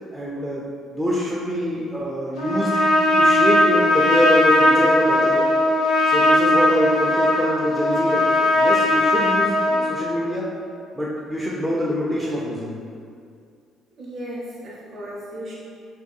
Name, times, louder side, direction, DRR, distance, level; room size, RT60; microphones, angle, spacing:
voice 1, 0.1-2.8 3.2-5.5 6.0-8.3 8.5-10.5 10.9-12.8, equal, 5° right, -6 dB, 0.4 m, -25 dB
Trumpet, 2.4-10.0, left 1 dB, 85° left, 0.6 m, -18 dB
voice 2, 14.0-15.5, equal, 55° right, -6 dB, 0.6 m, -35 dB
2.7 x 2.2 x 2.3 m, 2.3 s
supercardioid pair, 70°, 0 cm